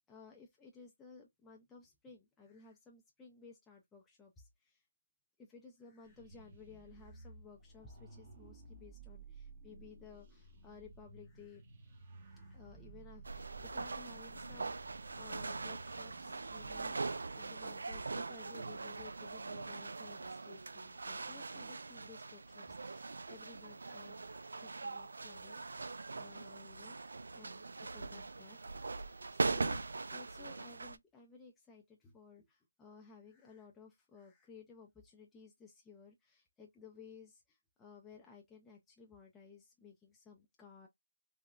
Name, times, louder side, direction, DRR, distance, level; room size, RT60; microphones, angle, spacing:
voice 1, 0.1-4.8 5.4-11.6 12.2-24.3 24.5-28.7 29.3-40.9, left 5 dB, 5° left, 0.4 m, -57 dB
Sci-Fi Morph, 6.0-17.1, right 3 dB, 30° right, 0.7 m, -55 dB
sound 1, 13.2-31.0, right 3 dB, 80° right, 0.3 m, -41 dB
3.6 x 2.1 x 2.3 m
hypercardioid pair, 165°, 0 cm